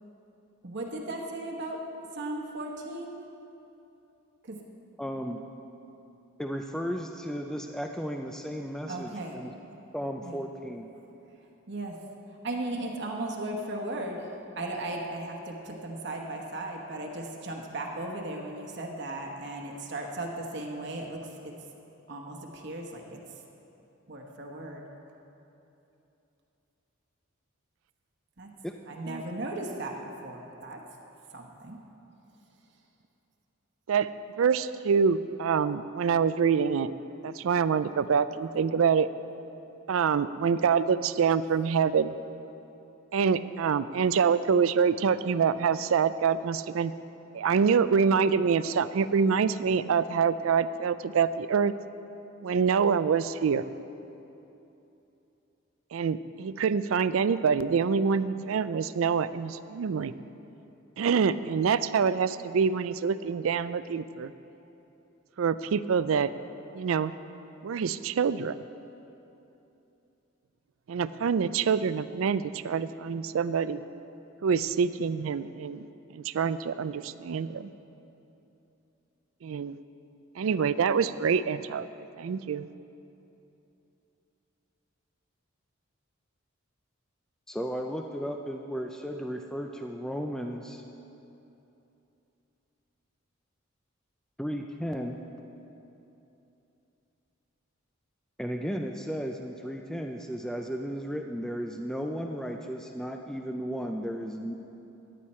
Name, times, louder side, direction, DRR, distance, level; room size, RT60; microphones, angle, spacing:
voice 1, 0.6-3.2 4.4-4.6 8.9-9.4 10.2-10.4 11.7-12.0 12.4-21.6 22.1-23.2 24.1-24.9 28.4-28.5 28.9-30.9 31.3-31.8, right 1 dB, 55° right, 1 dB, 1.1 m, -36 dB
voice 2, 5.0-5.4 6.4-9.5 9.9-10.9 28.6-28.7 87.5-90.8 94.4-95.2 98.4-104.5, equal, 5° left, 3 dB, 0.4 m, -34 dB
voice 3, 34.4-36.9 37.2-39.1 39.9-42.1 43.1-46.9 47.3-51.7 52.4-53.7 55.9-60.1 61.0-64.3 65.4-66.3 66.7-67.1 67.6-68.6 70.9-73.8 74.4-75.9 76.1-77.7 79.4-79.8 80.4-82.7, right 6 dB, 80° right, 14 dB, 0.4 m, -26 dB
14.0 x 10.0 x 4.3 m, 2.9 s
head